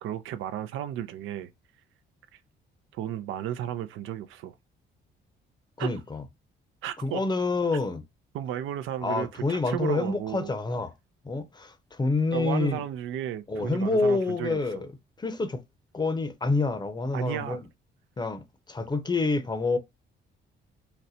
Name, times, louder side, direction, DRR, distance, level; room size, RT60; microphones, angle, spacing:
voice 1, 0.0-1.5 2.9-4.5 5.8-5.9 6.8-7.2 8.3-10.5 12.3-14.9 17.1-17.6, right 11 dB, 85° right, 0.5 m, -34 dB
voice 2, 5.8-6.2 7.0-8.0 9.0-10.9 11.2-12.8 13.5-14.9 15.2-15.6 15.9-17.6 18.2-18.4 18.7-19.8, left 3 dB, 20° left, 0.6 m, -27 dB
4.1 x 2.1 x 2.6 m
cardioid pair, 90°, 20 cm